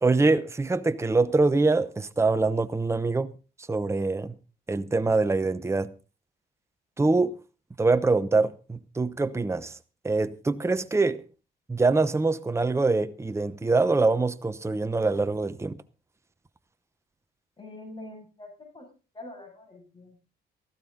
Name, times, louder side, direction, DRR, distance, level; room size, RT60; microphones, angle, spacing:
voice 1, 0.0-3.3 3.7-4.3 4.7-5.9 7.0-7.3 7.8-9.8 10.0-11.2 11.7-15.8, right 3 dB, 15° right, 0.9 m, -24 dB
voice 2, 17.6-18.9 19.1-20.2, left 2 dB, 25° left, 6.9 m, -44 dB
16.5 x 14.5 x 4.0 m
cardioid pair, 90°, 20 cm